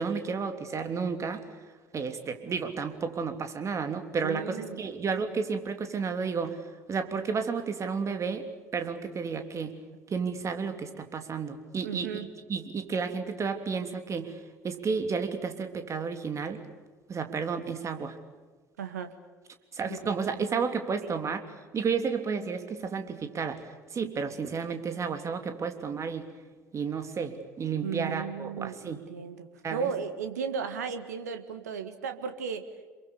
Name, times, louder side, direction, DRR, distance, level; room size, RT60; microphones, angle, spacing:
voice 1, 0.0-1.4 1.9-6.6 6.9-8.5 8.7-9.7 10.1-12.1 12.5-14.4 14.6-16.6 17.1-18.2 19.7-21.4 21.7-23.6 23.9-26.3 26.7-29.0 29.6-29.9, right 5 dB, 35° right, 7 dB, 3.3 m, -32 dB
voice 2, 4.2-4.8 11.8-12.3 18.8-19.1 19.9-20.0 21.0-21.1 27.8-32.7, right 6 dB, 75° right, 9 dB, 1.8 m, -35 dB
28.0 x 23.0 x 7.0 m, 1.4 s
figure-of-eight pair, 60°, 9 cm